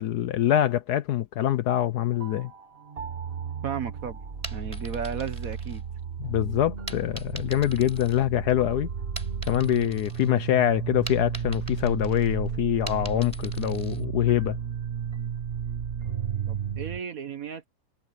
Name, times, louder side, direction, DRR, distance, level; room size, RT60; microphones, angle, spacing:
voice 1, 0.0-2.5 6.2-8.9 9.5-14.6, left 12 dB, 65° left, 1.1 m, -24 dB
sound 1, 2.1-17.0, right 7 dB, 35° right, 1.4 m, -33 dB
voice 2, 3.6-4.2 4.5-5.8 16.5-17.7, right 7 dB, 55° right, 1.3 m, -34 dB
sound 2, 4.3-6.2 6.9-8.6 9.0-10.3 10.6-14.0, right 1 dB, 15° right, 4.7 m, -43 dB
omnidirectional pair, 2.0 m